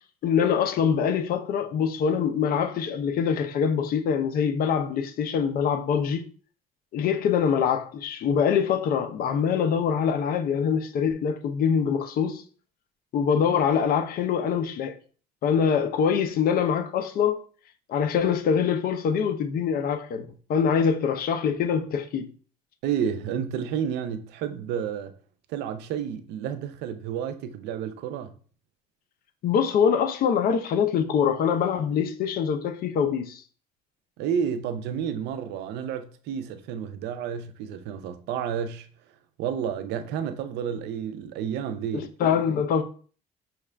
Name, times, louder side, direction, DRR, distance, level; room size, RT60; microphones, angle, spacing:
voice 1, 0.2-6.3 6.9-12.4 13.1-15.0 15.4-17.4 17.9-22.3 29.4-33.4 41.9-42.8, left 7 dB, 60° left, 0.6 m, -24 dB
voice 2, 22.8-25.1 25.5-28.3 34.2-38.9 39.4-42.1, right 8 dB, 85° right, 0.5 m, -30 dB
5.6 x 2.4 x 3.3 m
cardioid pair, 110°, 17 cm